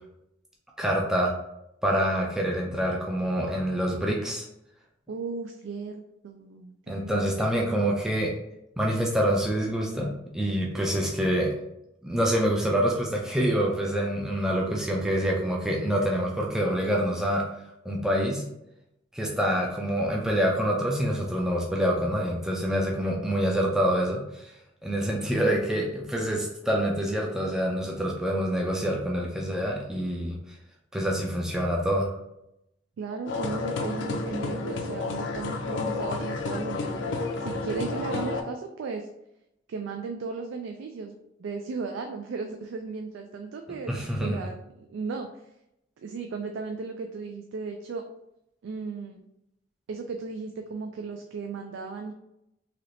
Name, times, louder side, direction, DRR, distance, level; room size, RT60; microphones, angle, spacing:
voice 1, 0.8-1.3 1.8-4.5 6.9-8.3 8.8-11.6 12.0-17.5 17.8-18.4 19.1-24.5 24.8-30.4 30.9-32.1 43.9-44.4, equal, 5° right, -2 dB, 0.3 m, -26 dB
voice 2, 5.1-7.3 33.0-39.1 39.7-41.1 41.4-45.3 46.0-48.0 48.6-49.2 49.9-52.1, right 4 dB, 80° right, 4 dB, 0.3 m, -36 dB
sound 1, 33.3-38.4, left 3 dB, 70° left, 0.4 m, -31 dB
3.3 x 2.8 x 2.5 m, 0.83 s
head